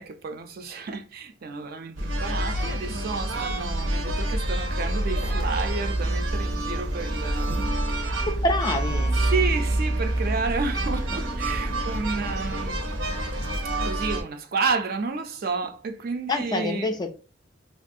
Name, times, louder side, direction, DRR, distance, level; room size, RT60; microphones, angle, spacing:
voice 1, 0.0-8.3 9.3-12.8 13.6-17.0, right 4 dB, 55° right, 0.4 m, -31 dB
sound 1, 2.0-14.2, right 1 dB, 90° right, 0.7 m, -27 dB
voice 2, 8.3-9.2 16.3-17.1, left 2 dB, 20° left, 0.3 m, -26 dB
2.9 x 2.3 x 2.6 m
head